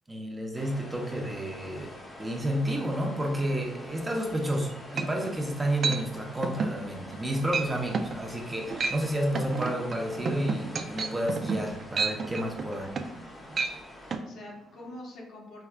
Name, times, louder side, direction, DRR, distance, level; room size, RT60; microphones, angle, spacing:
voice 1, 0.1-12.8, right 1 dB, 20° right, 0 dB, 0.7 m, -31 dB
sound 1, 0.5-14.2, left 1 dB, 35° left, 0.9 m, -45 dB
sound 2, 4.5-4.6 5.0-5.4 5.8-6.0 6.4-6.8 7.1-7.3 7.5-7.7 7.9-8.2 8.6-9.0 9.3-13.2 13.5-13.7 14.1-14.2, right 4 dB, 50° right, 0.3 m, -30 dB
voice 2, 12.7-13.3 14.2-15.7, left 1 dB, 75° left, -3 dB, 1.0 m, -45 dB
4.5 x 2.3 x 2.2 m, 0.94 s
cardioid pair, 90°, 0 cm